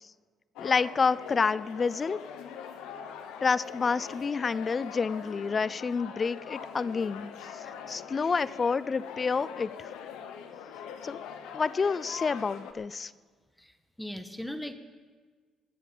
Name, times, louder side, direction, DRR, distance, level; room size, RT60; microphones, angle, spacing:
sound 1, 0.6-12.7, left 7 dB, 75° left, 1.0 m, -43 dB
voice 1, 0.6-2.2 3.4-9.9 11.0-11.2 11.5-13.1, left 5 dB, 40° left, 19 dB, 0.4 m, -29 dB
voice 2, 14.0-14.7, left 1 dB, 5° left, 8 dB, 1.5 m, -38 dB
22.0 x 8.3 x 5.5 m, 1.5 s
hypercardioid pair, 55°, 0 cm